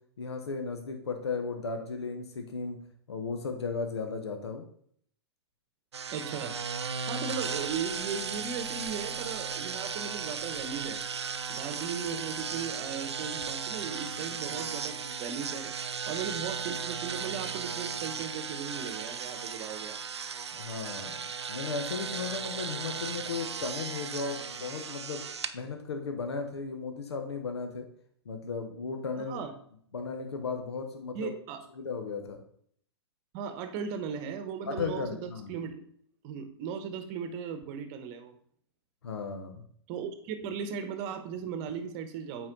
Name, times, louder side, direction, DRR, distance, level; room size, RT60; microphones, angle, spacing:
voice 1, 0.2-2.8 3.1-4.6 20.5-25.2 25.5-27.9 28.2-29.4 29.9-31.3 31.7-32.4 34.6-35.6 39.0-39.6, left 4 dB, 75° left, 5 dB, 1.1 m, -35 dB
sound 1, 5.9-25.5, right 6 dB, 85° right, 0.5 m, -36 dB
voice 2, 6.1-6.6 7.1-11.0 11.5-15.7 16.1-20.0 29.2-29.5 31.1-31.6 33.3-35.9 36.2-38.4 39.9-42.5, right 7 dB, 40° right, 8 dB, 1.0 m, -37 dB
8.7 x 4.3 x 3.9 m, 0.63 s
hypercardioid pair, 115°, 14 cm